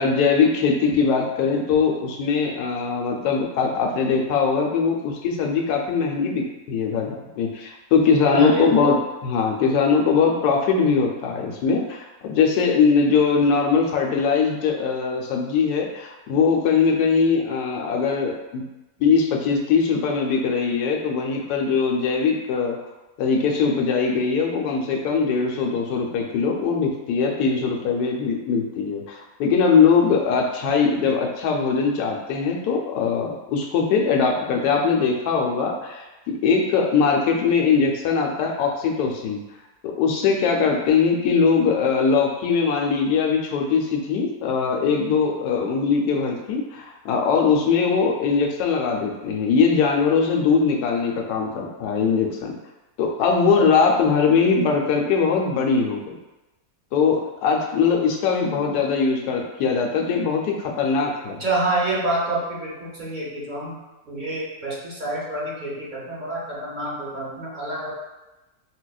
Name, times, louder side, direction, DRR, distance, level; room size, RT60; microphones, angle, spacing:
voice 1, 0.0-9.0 9.2-18.6 19.0-22.8 23.2-39.4 39.8-52.5 53.0-56.1 56.9-61.4, left 5 dB, 80° left, 0 dB, 1.1 m, -21 dB
voice 2, 8.3-9.0 61.4-63.8 64.0-67.9, right 2 dB, 40° right, -6 dB, 0.7 m, -27 dB
4.7 x 2.1 x 2.3 m, 1.0 s
omnidirectional pair, 1.7 m